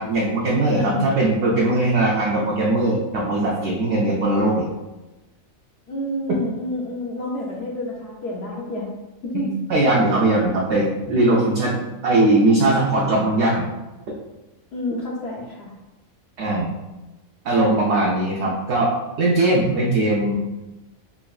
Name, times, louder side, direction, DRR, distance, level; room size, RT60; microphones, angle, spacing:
voice 1, 0.0-4.7 6.3-6.4 9.3-13.7 16.4-16.7 17.4-18.9 19.2-20.4, right 2 dB, 65° right, -3 dB, 0.8 m, -20 dB
voice 2, 0.7-1.5 5.9-8.9 9.3-9.5 14.7-15.7, left 1 dB, 60° left, -4 dB, 0.8 m, -29 dB
5.5 x 2.3 x 2.3 m, 1.1 s
omnidirectional pair, 1.4 m